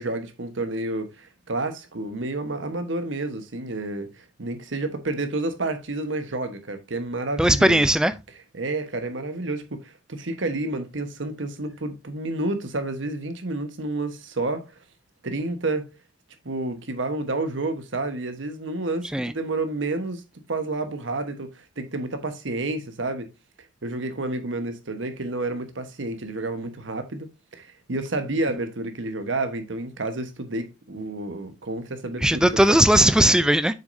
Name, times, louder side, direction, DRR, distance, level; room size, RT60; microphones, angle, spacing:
voice 1, 0.0-7.9 8.5-14.7 15.2-15.9 16.4-20.2 20.5-23.3 23.8-32.6, right 2 dB, 80° right, 1.1 m, -30 dB
voice 2, 7.4-8.1 19.1-19.3 32.2-33.7, right 1 dB, 5° right, 0.4 m, -18 dB
7.3 x 6.2 x 2.6 m
head